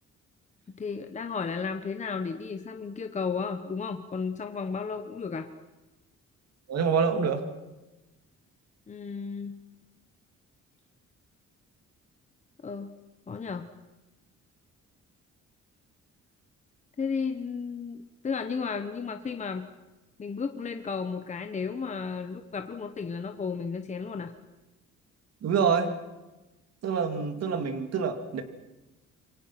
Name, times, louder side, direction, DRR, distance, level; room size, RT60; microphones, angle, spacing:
voice 1, 0.8-5.5 8.9-9.6 12.6-12.9 13.3-13.7 17.0-19.7 20.2-24.3, left 5 dB, 25° left, 6 dB, 1.2 m, -33 dB
voice 2, 6.7-7.4 25.4-25.9 26.8-28.4, right 6 dB, 60° right, 7 dB, 2.9 m, -26 dB
27.5 x 24.0 x 6.0 m, 1.1 s
cardioid pair, 170°, 29 cm